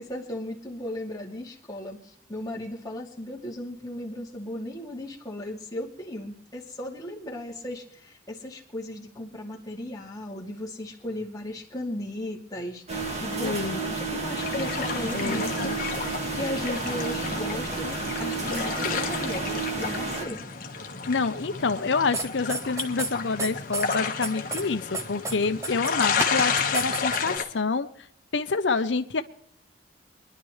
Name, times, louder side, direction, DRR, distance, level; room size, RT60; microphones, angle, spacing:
voice 1, 0.0-20.4, left 1 dB, 20° left, -1 dB, 2.6 m, -36 dB
sound 1, 12.9-20.2, right 3 dB, 40° right, 2.1 m, -31 dB
voice 2, 13.4-13.8 15.1-15.8 21.1-27.9 28.3-29.2, left 4 dB, 80° left, 10 dB, 0.7 m, -27 dB
sound 2, 14.4-27.4, left 5 dB, 50° left, 1.5 m, -31 dB
sound 3, 22.1-23.1 23.4-24.0 24.2-24.7 24.9-27.4, right 3 dB, 15° right, 1.0 m, -30 dB
25.0 x 11.0 x 3.2 m, 0.69 s
head